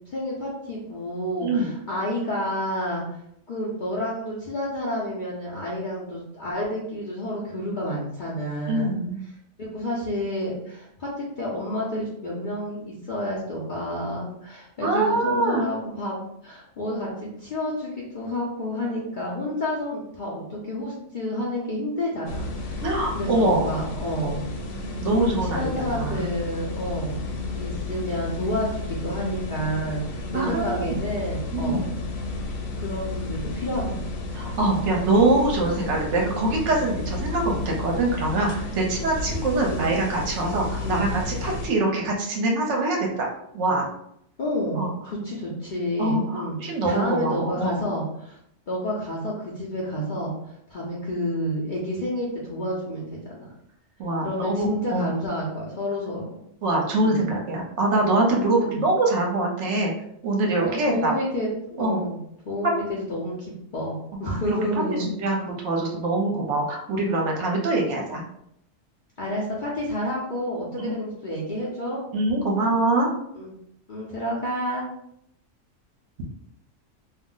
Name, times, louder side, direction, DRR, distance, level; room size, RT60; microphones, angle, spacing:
voice 1, 0.0-3.2 3.5-9.0 9.6-16.2 16.4-22.8 23.1-24.4 25.0-27.2 27.5-31.9 32.8-34.0 34.7-34.8 39.6-39.8 40.8-41.0 44.4-48.4 48.7-50.3 50.7-53.5 54.2-56.4 57.0-57.3 58.6-58.8 60.6-61.5 61.8-62.2 62.4-65.1 69.2-72.0 73.3-73.5 73.9-74.9, equal, 50° left, -5 dB, 0.6 m, -30 dB
voice 2, 1.4-1.7 8.7-9.2 14.8-15.6 22.8-23.7 24.2-24.3 24.8-26.3 30.3-31.0 31.5-31.8 34.3-43.9 44.7-44.9 46.0-47.8 54.0-55.1 56.6-59.9 60.2-61.2 61.8-62.0 64.2-68.2 70.8-70.9 72.1-73.1, right 2 dB, 65° right, 0 dB, 0.9 m, -24 dB
sound 1, 22.3-41.7, left 2 dB, 85° left, 1.0 m, -32 dB
2.5 x 2.0 x 3.7 m, 0.74 s
omnidirectional pair, 1.4 m